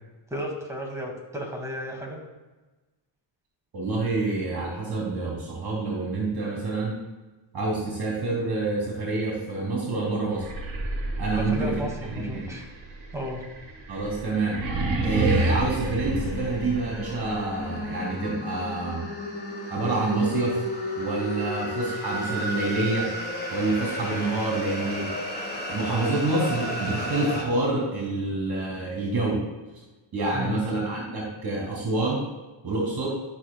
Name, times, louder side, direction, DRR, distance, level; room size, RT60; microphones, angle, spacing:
voice 1, 0.3-2.2 11.3-12.7 13.1-13.4 30.3-30.6, equal, 5° right, -1 dB, 2.0 m, -33 dB
voice 2, 3.7-6.9 7.5-10.5 11.2-11.7 12.1-12.5 13.9-14.6 15.0-19.0 19.7-20.6 21.0-23.1 23.5-25.1 25.7-29.4 30.1-32.2 32.6-33.1, right 2 dB, 55° right, -3 dB, 2.5 m, -27 dB
sound 1, 10.3-17.2, right 2 dB, 75° right, 1.5 m, -30 dB
sound 2, 14.2-27.4, equal, 20° left, 1.5 m, -33 dB
12.0 x 6.2 x 2.2 m, 1.2 s
cardioid pair, 110°, 45 cm